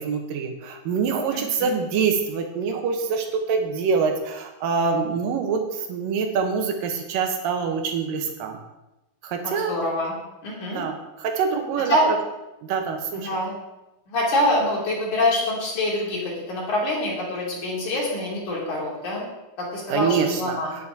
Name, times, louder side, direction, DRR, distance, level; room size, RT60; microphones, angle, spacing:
voice 1, 0.0-5.6 5.9-8.6 9.2-9.7 10.7-12.0 12.6-13.3 19.9-20.6, right 5 dB, 75° right, 4 dB, 2.8 m, -25 dB
voice 2, 1.3-1.7 9.4-10.2 10.4-10.8 11.8-12.1 13.1-13.5 14.1-16.2 16.5-19.3 19.6-20.8, left 1 dB, 60° left, -4 dB, 4.0 m, -25 dB
9.5 x 8.2 x 4.2 m, 0.98 s
omnidirectional pair, 4.0 m